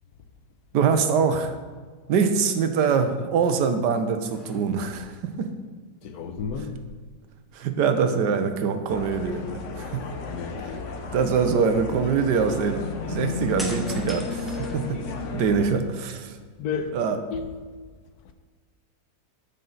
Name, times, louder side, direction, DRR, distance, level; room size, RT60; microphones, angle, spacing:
voice 1, 0.7-1.5 2.1-5.5 7.5-10.0 11.1-15.0 15.3-16.4 16.9-17.2, right 6 dB, 90° right, 1.4 m, -24 dB
sound 1, 3.5-3.8 4.2-5.0 6.2-7.5 7.8-7.9 13.6-15.4 15.9-16.8, equal, ahead, 1.1 m, -41 dB
voice 2, 6.0-6.8 10.3-10.9 16.6-17.0 17.3-17.7 18.2-18.3, left 6 dB, 75° left, 1.2 m, -32 dB
sound 2, 8.9-15.7, left 3 dB, 55° left, 1.0 m, -33 dB
13.5 x 5.4 x 4.0 m
omnidirectional pair, 1.8 m